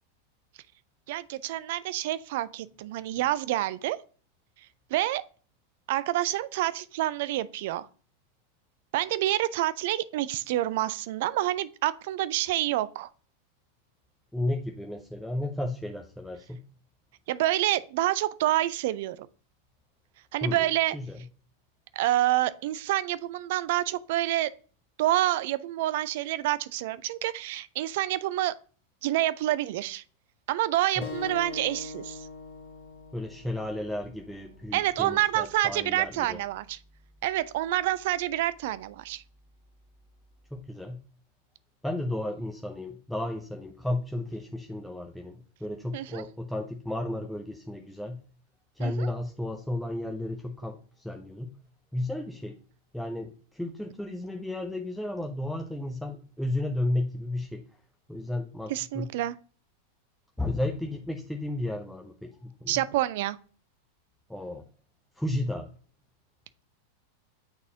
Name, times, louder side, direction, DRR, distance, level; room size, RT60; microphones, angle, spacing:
voice 1, 1.1-4.0 4.9-5.2 5.9-7.9 8.9-13.1 17.3-19.3 20.3-21.0 21.9-24.5 25.0-28.5 29.0-30.0 30.5-32.3 34.7-36.8 37.2-39.2 45.9-46.2 48.8-49.1 58.7-59.4 62.7-63.4, right 15 dB, 50° right, 0.4 m, -28 dB
voice 2, 14.3-16.6 20.4-20.7 20.9-21.2 31.0-31.1 33.1-36.4 40.5-41.0 41.8-48.2 48.8-51.5 51.9-52.6 52.9-57.6 58.1-59.1 60.4-62.8 64.3-64.6 65.2-65.7, left 1 dB, ahead, 0.6 m, -33 dB
sound 1, 31.0-36.1, left 3 dB, 50° left, 1.5 m, -43 dB
8.7 x 4.0 x 2.8 m
figure-of-eight pair, 90°, 0 cm